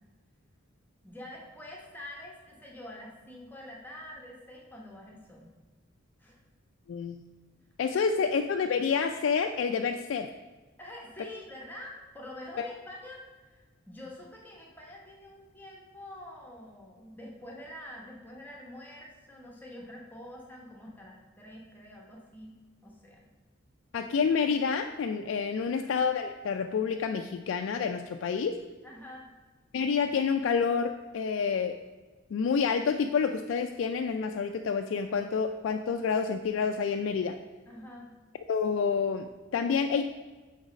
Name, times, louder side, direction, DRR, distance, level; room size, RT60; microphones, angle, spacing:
voice 1, 1.0-5.5 6.2-6.4 10.8-22.6 22.8-23.3 25.6-25.9 28.8-29.3 37.7-38.2, left 1 dB, 10° left, -2 dB, 0.9 m, -46 dB
voice 2, 7.8-10.3 12.6-12.7 23.9-28.6 29.7-31.8 32.3-37.4 38.5-40.0, left 6 dB, 60° left, 5 dB, 0.3 m, -28 dB
6.2 x 4.0 x 5.2 m, 1.3 s
head